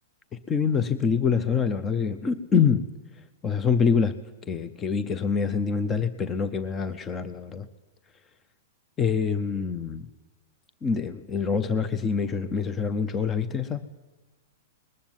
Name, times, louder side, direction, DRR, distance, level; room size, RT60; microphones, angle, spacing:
voice 1, 0.3-2.8 3.4-4.2 4.5-7.7 9.0-10.1 10.8-13.9, left 6 dB, 15° left, 12 dB, 0.6 m, -25 dB
20.5 x 14.5 x 9.3 m, 1.2 s
supercardioid pair, 175°, 0 cm